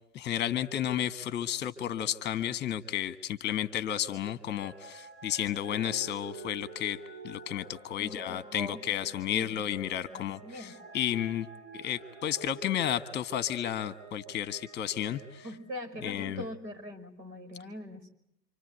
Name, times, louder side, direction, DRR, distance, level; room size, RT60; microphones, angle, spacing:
voice 1, 0.1-7.0 7.2-11.5 11.7-15.4 16.0-16.4, left 11 dB, 20° left, 14 dB, 1.4 m, -32 dB
sound 1, 4.5-16.5 17.1-17.2, right 3 dB, 50° right, 5.2 m, -50 dB
voice 2, 8.0-9.6 10.1-10.7 15.4-18.1, equal, 80° right, 5 dB, 5.9 m, -43 dB
28.0 x 26.0 x 8.1 m, 0.79 s
hypercardioid pair, 125°, 50 cm